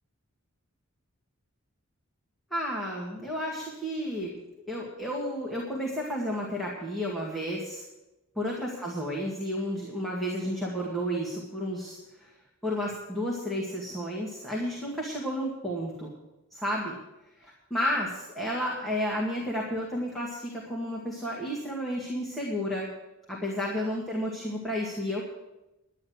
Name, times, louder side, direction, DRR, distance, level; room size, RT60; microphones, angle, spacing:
voice 1, 2.5-4.3 4.7-7.8 8.4-12.3 12.6-16.1 16.5-17.0 17.4-22.9 23.3-25.2, equal, ahead, -5 dB, 2.0 m, -32 dB
11.5 x 10.0 x 6.3 m, 0.97 s
head